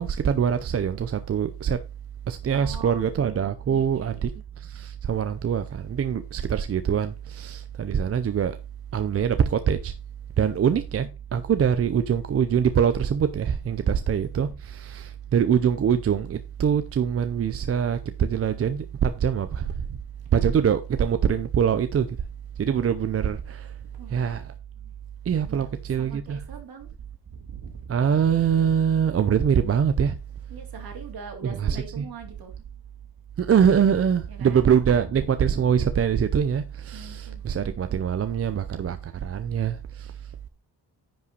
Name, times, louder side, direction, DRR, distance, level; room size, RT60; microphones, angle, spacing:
voice 1, 0.0-1.8 2.3-4.3 4.6-8.6 8.9-9.9 10.4-20.0 20.3-22.1 22.6-23.7 24.1-24.4 25.3-26.4 27.9-30.2 31.6-32.0 33.4-40.1, right 8 dB, 35° right, 0.5 m, -24 dB
voice 2, 2.5-3.1 3.7-4.3 10.4-10.7 13.8-14.3 23.8-24.3 25.5-26.9 27.2-28.1 30.5-32.6 34.3-35.4 36.9-37.4, right 5 dB, 55° right, 3.0 m, -43 dB
10.0 x 5.6 x 3.9 m
wide cardioid pair, 180°, 42 cm